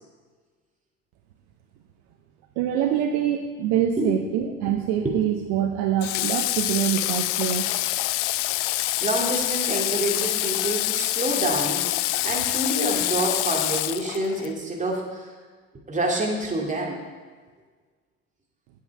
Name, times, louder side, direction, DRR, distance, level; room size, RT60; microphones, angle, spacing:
voice 1, 2.6-7.7 10.6-10.7 12.1-12.3, right 10 dB, 60° right, 4 dB, 0.9 m, -25 dB
voice 2, 4.0-4.8 5.0-5.2 9.0-11.8 12.2-15.3 15.9-17.0, right 1 dB, 20° right, -1 dB, 2.4 m, -27 dB
Water / Water tap faucet, 6.0-14.5, left 17 dB, 60° left, 0.5 m, -26 dB
9.3 x 8.0 x 4.7 m, 1.5 s
figure-of-eight pair, 65°, 41 cm